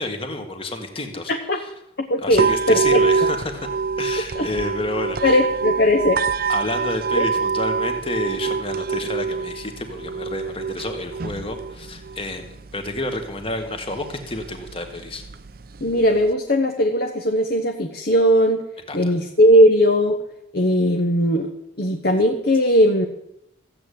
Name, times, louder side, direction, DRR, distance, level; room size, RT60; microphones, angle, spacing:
voice 1, 0.0-1.3 2.2-3.7 4.0-5.4 6.5-15.2 18.9-19.1, left 2 dB, 30° left, 5 dB, 1.8 m, -29 dB
voice 2, 1.3-1.6 2.0-3.0 4.3-4.5 5.2-6.2 7.2-7.3 15.8-18.6 18.9-20.2 20.5-21.5 21.8-23.1, equal, 50° left, 4 dB, 1.1 m, -18 dB
sound 1, 2.3-16.3, right 5 dB, 50° right, 0.6 m, -26 dB
15.0 x 8.0 x 8.5 m, 0.83 s
head